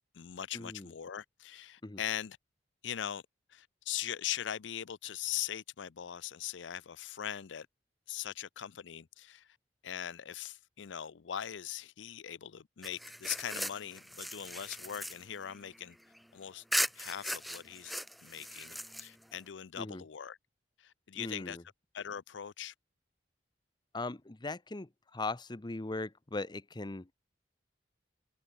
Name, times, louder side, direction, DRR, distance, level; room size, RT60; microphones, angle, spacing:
voice 1, 0.0-2.4 2.8-3.2 3.5-7.7 8.1-9.5 9.8-16.0 16.3-16.6 16.9-20.4 20.8-21.6 21.9-22.7, left 10 dB, 90° left, 0.5 m, -41 dB
voice 2, 0.5-0.9 1.8-2.0 19.8-20.0 21.1-21.6 23.9-27.1, left 2 dB, 25° left, 0.8 m, -39 dB
sound 1, 12.8-16.2 16.7-19.4, equal, ahead, 0.5 m, -38 dB
head